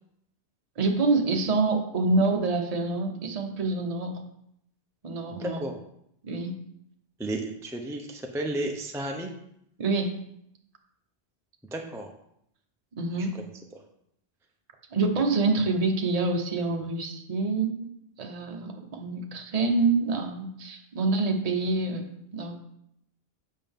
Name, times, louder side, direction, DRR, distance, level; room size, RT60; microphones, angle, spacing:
voice 1, 0.8-4.1 5.0-5.7 6.2-6.6 9.8-10.1 13.0-13.3 14.9-17.9 18.2-22.5, right 3 dB, 40° right, 3 dB, 0.9 m, -26 dB
voice 2, 5.4-5.8 7.2-9.3 11.7-12.1 13.2-13.3, right 1 dB, 5° right, 2 dB, 0.4 m, -32 dB
7.4 x 5.4 x 3.6 m, 0.76 s
omnidirectional pair, 1.1 m